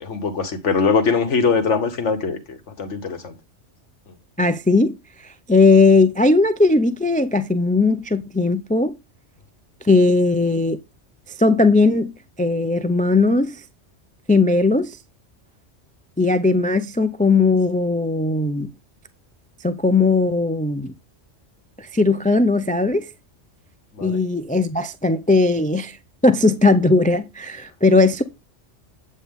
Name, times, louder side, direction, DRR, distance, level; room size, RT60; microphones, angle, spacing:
voice 1, 0.0-3.3 23.9-24.2, left 5 dB, 75° left, 1.5 m, -22 dB
voice 2, 4.4-4.9 5.2-9.0 9.8-10.8 11.4-12.1 12.4-13.6 14.3-15.0 16.2-18.7 19.6-20.9 21.8-23.1 24.0-26.0 26.2-28.2, left 3 dB, 10° left, 0.4 m, -18 dB
8.6 x 8.5 x 3.6 m
omnidirectional pair, 1.2 m